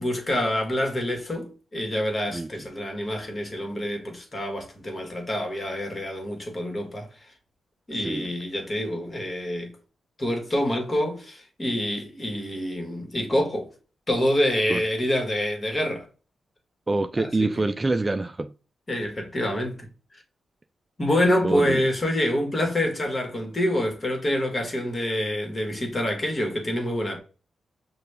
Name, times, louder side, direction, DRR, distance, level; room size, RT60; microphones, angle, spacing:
voice 1, 0.0-7.1 7.9-9.7 10.2-13.7 14.1-16.1 17.2-17.5 18.9-19.9 21.0-27.2, left 1 dB, 35° left, 1.4 m, -26 dB
voice 2, 8.0-8.3 14.7-14.8 16.9-18.5 21.4-21.8, right 2 dB, 25° right, 0.3 m, -26 dB
5.9 x 2.3 x 3.3 m
cardioid pair, 80°, 0 cm